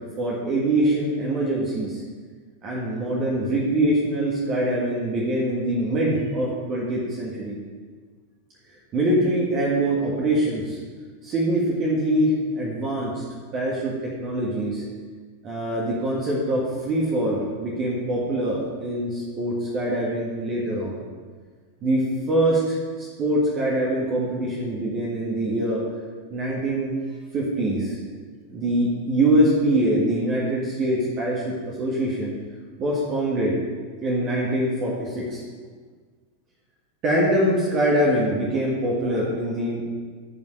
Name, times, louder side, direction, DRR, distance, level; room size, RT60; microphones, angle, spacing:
voice 1, 0.2-2.0 2.6-7.5 8.9-10.8 11.2-13.2 13.5-13.9 14.2-14.8 15.4-21.0 21.8-25.8 26.3-26.9 27.3-28.0 28.5-31.5 31.8-32.3 32.8-33.5 34.0-35.4 37.0-39.8, right 1 dB, 30° right, -4 dB, 1.8 m, -24 dB
15.5 x 5.5 x 3.4 m, 1.5 s
figure-of-eight pair, 90°, 0 cm